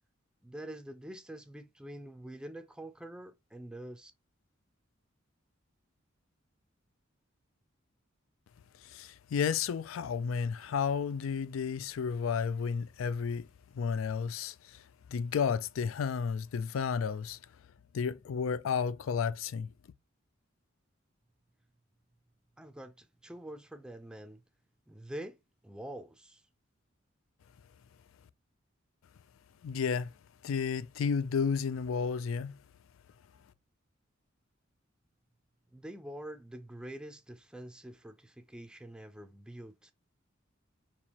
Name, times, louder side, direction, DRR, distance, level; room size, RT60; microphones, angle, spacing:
voice 1, 0.4-4.1 22.6-24.4 24.9-25.4 25.6-26.4 35.7-39.9, right 1 dB, 5° right, 0.4 m, -46 dB
voice 2, 8.8-13.5 13.7-14.8 15.1-17.4 17.9-19.7 29.6-30.1 30.4-32.6, left 6 dB, 85° left, 0.4 m, -32 dB
4.3 x 2.9 x 2.9 m
head